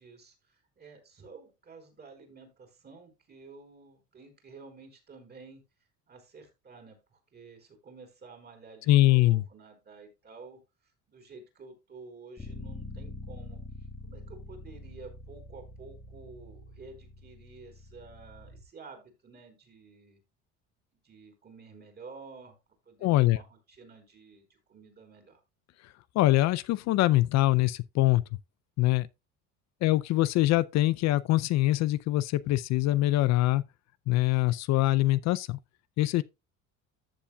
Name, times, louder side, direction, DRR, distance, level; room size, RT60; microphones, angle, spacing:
voice 1, 0.0-5.6 6.1-13.6 14.0-20.2 21.0-22.6 22.9-25.4, right 4 dB, 30° right, 4.3 m, -51 dB
voice 2, 8.9-9.4 23.0-23.4 25.8-28.2 28.8-29.1 29.8-33.6 34.1-35.6 36.0-36.2, left 16 dB, 60° left, 0.5 m, -24 dB
Bass guitar, 12.4-18.6, left 1 dB, 10° left, 1.4 m, -45 dB
14.0 x 7.3 x 2.3 m
cardioid pair, 125°, 31 cm